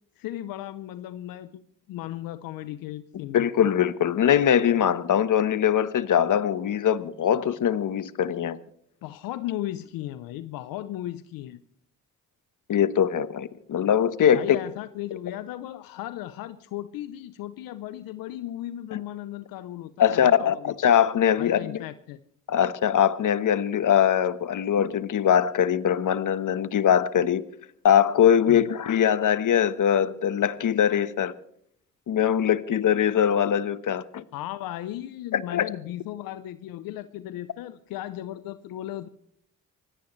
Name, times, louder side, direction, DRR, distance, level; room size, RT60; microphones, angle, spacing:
voice 1, 0.2-1.6 1.9-3.6 9.0-11.6 14.3-20.8 21.4-22.2 28.5-28.7 34.3-39.1, left 13 dB, 90° left, 0.7 m, -36 dB
voice 2, 3.3-8.6 12.7-14.6 18.9-19.0 20.0-21.8 22.5-27.4 27.8-31.3 32.1-34.2 35.3-35.7, left 9 dB, 65° left, 1.3 m, -22 dB
25.0 x 17.0 x 3.2 m
supercardioid pair, 55°, 34 cm